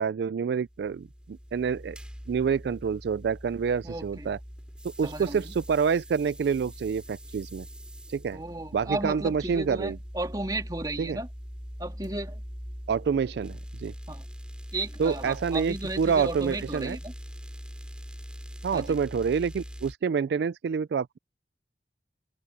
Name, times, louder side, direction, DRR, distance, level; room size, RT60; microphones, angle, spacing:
voice 1, 0.0-2.0 2.3-4.4 5.0-7.7 8.1-8.4 8.7-10.0 11.0-11.2 12.9-13.9 15.0-17.0 18.6-21.2, right 6 dB, 70° right, 0.3 m, -27 dB
sound 1, 0.6-19.9, equal, 5° right, 4.9 m, -42 dB
voice 2, 3.8-4.3 5.0-5.5 8.3-11.3 11.8-12.4 14.1-14.3 14.7-17.1 18.7-19.0, right 2 dB, 20° right, 3.1 m, -34 dB
open air
head